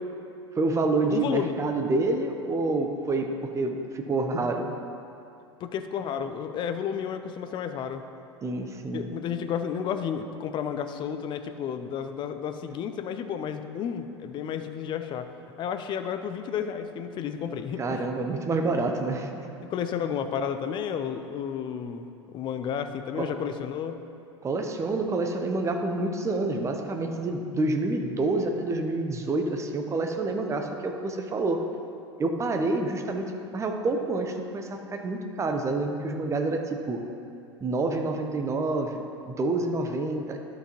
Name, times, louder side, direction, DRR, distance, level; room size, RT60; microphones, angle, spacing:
voice 1, 0.5-4.8 8.4-9.1 17.8-19.5 23.2-23.3 24.4-31.6 32.2-33.2 33.5-37.0 37.6-40.4, right 2 dB, 20° right, 4 dB, 0.8 m, -28 dB
voice 2, 1.1-1.5 5.6-8.0 8.9-15.3 15.6-18.0 19.6-24.0, left 8 dB, 30° left, 8 dB, 0.5 m, -32 dB
12.0 x 6.0 x 3.0 m, 2.6 s
figure-of-eight pair, 80°, 15 cm